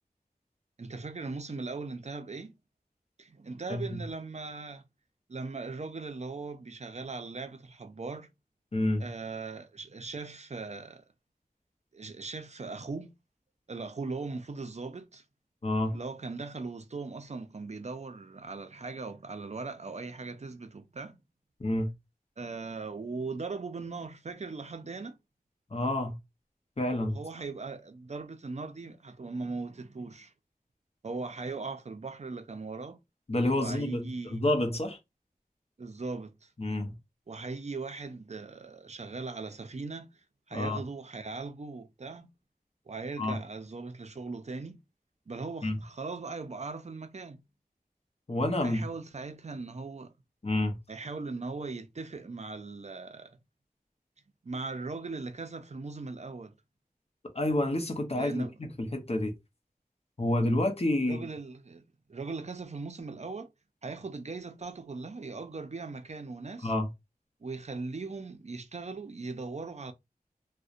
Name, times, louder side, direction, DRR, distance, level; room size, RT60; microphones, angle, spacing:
voice 1, 0.8-2.5 3.2-4.9 5.3-8.3 9.0-11.0 11.9-13.1 13.7-15.2 15.9-21.2 22.4-25.2 27.1-30.3 31.0-33.0 33.5-34.4 35.8-36.5 37.3-40.1 40.5-42.3 42.9-44.8 45.3-47.4 48.6-50.1 50.9-53.4 54.4-56.5 58.2-58.5 61.0-61.8 62.1-63.5 63.8-66.7 67.4-69.9, right 3 dB, 50° right, 0.4 m, -39 dB
voice 2, 3.7-4.0 8.7-9.1 15.6-16.0 21.6-21.9 25.7-26.2 26.8-27.2 33.3-35.0 36.6-37.0 40.5-40.8 43.2-43.4 45.6-45.8 48.3-48.9 50.4-50.8 57.3-58.5 58.8-59.3 60.2-61.3 66.6-66.9, left 1 dB, 40° left, 0.7 m, -29 dB
2.6 x 2.1 x 2.4 m
wide cardioid pair, 40°, 15 cm